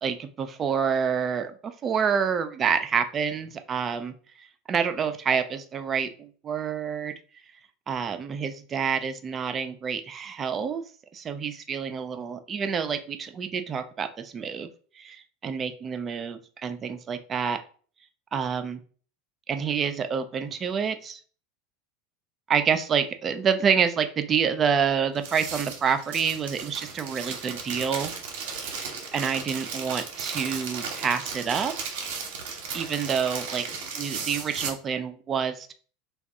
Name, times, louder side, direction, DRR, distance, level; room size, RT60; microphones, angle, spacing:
voice 1, 0.0-4.1 4.7-7.2 7.9-10.8 11.1-14.7 15.0-17.6 18.3-18.8 19.5-21.2 22.5-28.1 28.6-28.7 29.1-31.7 32.7-33.7 33.9-35.7, right 7 dB, 30° right, 9 dB, 0.4 m, -28 dB
sound 1, 25.1-34.7, right 5 dB, 70° right, 0.8 m, -35 dB
2.6 x 2.4 x 3.4 m, 0.43 s
hypercardioid pair, 90°, 0 cm